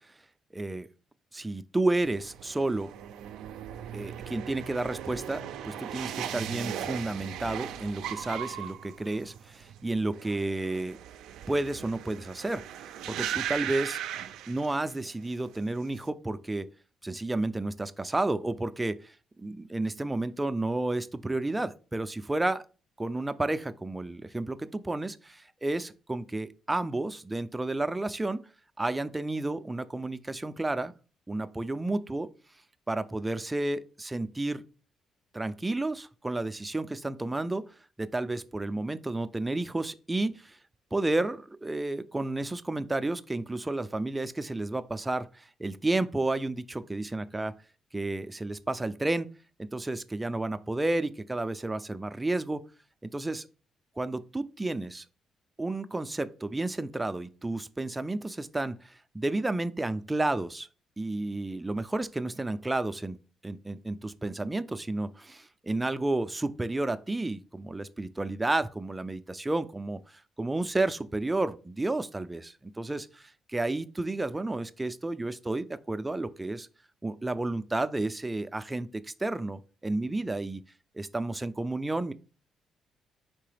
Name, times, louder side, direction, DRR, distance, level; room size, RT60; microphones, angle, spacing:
voice 1, 0.5-0.9 1.3-2.9 3.9-11.0 11.5-12.6 13.1-14.0 14.5-16.7 17.0-22.6 23.0-28.4 28.8-30.9 31.3-32.3 32.9-34.6 35.3-37.6 38.0-40.6 40.9-47.5 47.9-49.3 49.6-52.6 53.0-53.5 54.0-55.0 55.6-60.7 61.0-70.0 70.4-76.7 77.0-80.6 80.9-82.1, right 2 dB, 15° right, 0.4 m, -31 dB
sound 1, 2.0-15.1 15.4-16.0, right 10 dB, 90° right, 0.3 m, -38 dB
4.6 x 3.3 x 3.3 m
cardioid pair, 90°, 0 cm